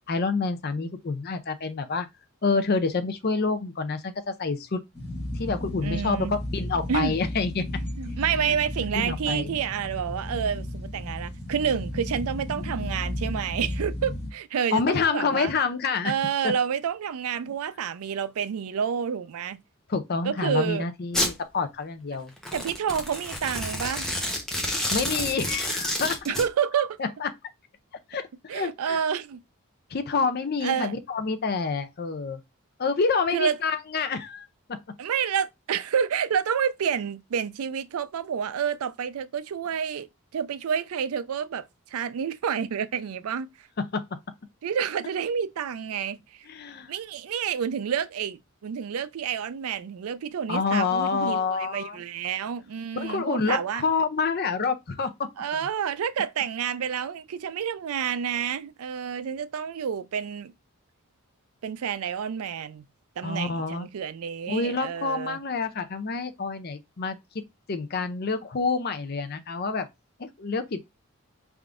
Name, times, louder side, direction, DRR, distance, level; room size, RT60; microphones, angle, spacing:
voice 1, 0.1-2.1 2.4-4.8 5.4-7.6 8.3-8.5 9.0-9.6 14.7-16.1 16.4-16.5 19.9-22.3 24.9-26.2 27.2-27.3 28.1-29.0 29.9-32.4 32.8-34.5 43.9-44.1 46.5-46.9 50.5-52.0 53.0-55.1 63.2-63.9 64.5-67.2 67.7-69.9 70.2-70.8, left 4 dB, 45° left, 0.5 m, -27 dB
sound 1, 4.9-14.3, left 1 dB, 20° left, 1.7 m, -34 dB
voice 2, 5.8-6.3 6.9-7.1 8.0-15.5 16.0-19.6 20.2-20.9 22.5-24.1 26.3-27.0 28.5-29.4 30.6-30.9 33.3-33.6 35.0-40.1 40.3-43.5 44.6-46.2 46.9-53.9 55.4-60.5 61.6-62.8 63.2-65.4, right 7 dB, 75° right, 0.4 m, -29 dB
Domestic sounds home sounds, 21.1-21.3 22.4-26.5, left 1 dB, ahead, 0.7 m, -29 dB
4.4 x 3.5 x 2.5 m
head